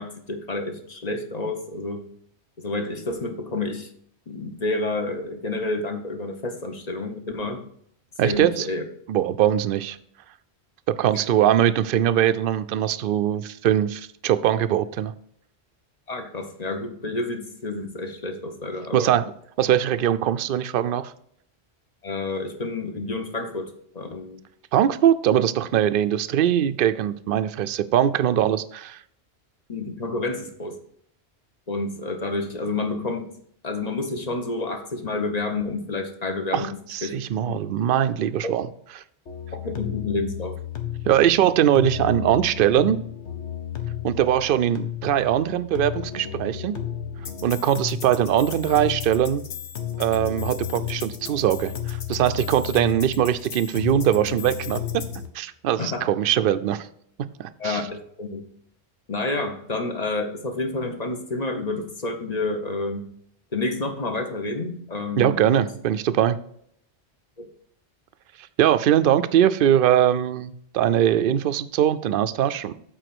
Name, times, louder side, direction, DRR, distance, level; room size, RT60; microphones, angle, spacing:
voice 1, 0.0-2.0 2.6-3.9 4.3-7.6 8.2-8.8 11.1-11.2 16.1-19.1 22.0-24.4 29.7-30.8 31.7-33.3 33.6-36.7 37.0-37.2 37.5-37.6 38.4-38.6 39.5-40.6 55.8-56.1 57.6-58.5 59.1-63.1 63.5-65.6 67.4-67.5, left 2 dB, 40° left, 5 dB, 1.2 m, -29 dB
voice 2, 8.2-8.7 9.1-10.0 10.9-15.1 18.9-19.3 19.6-21.1 24.7-29.0 36.5-38.7 41.1-43.0 44.0-46.8 47.4-49.4 50.0-54.8 55.3-56.9 57.2-57.8 65.2-66.4 68.6-72.7, right 10 dB, 60° right, 12 dB, 0.7 m, -21 dB
sound 1, 39.3-55.3, left 10 dB, 85° left, 1.3 m, -33 dB
8.0 x 4.3 x 6.0 m, 0.68 s
omnidirectional pair, 1.1 m